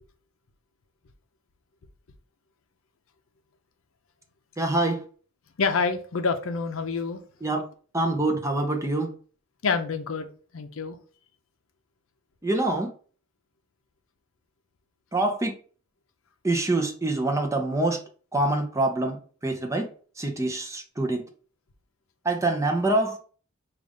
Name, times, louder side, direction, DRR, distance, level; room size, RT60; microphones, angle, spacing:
voice 1, 4.6-5.0 7.4-7.6 7.9-9.1 12.4-12.9 15.1-15.5 16.4-18.0 18.3-19.2 19.4-19.9 20.2-21.2 22.2-23.2, right 2 dB, 15° right, 0.7 m, -25 dB
voice 2, 5.6-7.2 9.6-10.3 10.5-11.0, left 4 dB, 70° left, 0.6 m, -27 dB
5.1 x 2.5 x 3.5 m
head